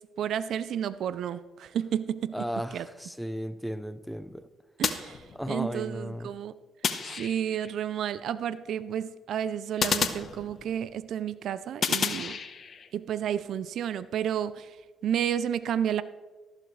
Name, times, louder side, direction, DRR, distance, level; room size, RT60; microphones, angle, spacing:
voice 1, 0.2-2.4 2.7-2.9 4.8-6.5 7.2-12.4 12.9-14.7 15.0-16.0, right 9 dB, 70° right, 0.5 m, -31 dB
voice 2, 2.3-4.5 5.3-6.3, equal, ahead, 0.7 m, -35 dB
sound 1, 4.8-5.8 6.8-7.7 9.8-10.9 11.8-12.9, left 6 dB, 50° left, 1.0 m, -31 dB
14.0 x 12.0 x 3.3 m
cardioid pair, 90°, 0 cm